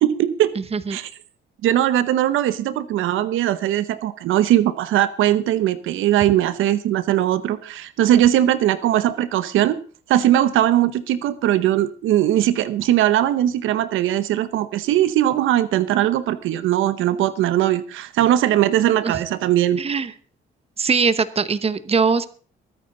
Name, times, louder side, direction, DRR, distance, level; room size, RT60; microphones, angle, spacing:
voice 1, 0.0-0.5 0.9-1.1 1.6-9.8 10.1-19.8, right 12 dB, 85° right, 14 dB, 0.9 m, -20 dB
voice 2, 0.6-1.0 19.0-19.2 19.8-20.1 20.8-22.2, right 5 dB, 30° right, 15 dB, 1.0 m, -21 dB
22.0 x 9.1 x 3.9 m, 0.41 s
cardioid pair, 90°, 20 cm